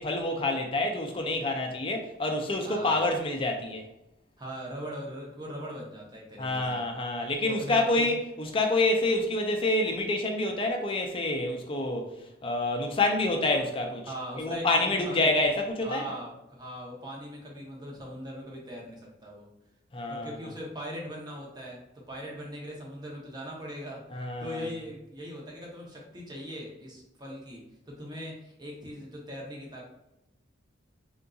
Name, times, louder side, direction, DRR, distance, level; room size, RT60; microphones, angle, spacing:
voice 1, 0.0-3.8 6.4-8.2 8.5-12.1 12.4-14.0 14.4-16.0 19.9-20.4 24.1-24.6, left 2 dB, 25° left, 3 dB, 0.4 m, -27 dB
voice 2, 2.6-3.1 4.4-6.8 7.4-8.1 14.1-15.3 15.8-19.5 20.1-21.8 22.1-29.9, equal, 20° right, -3 dB, 0.7 m, -40 dB
3.6 x 2.6 x 2.3 m, 0.89 s
head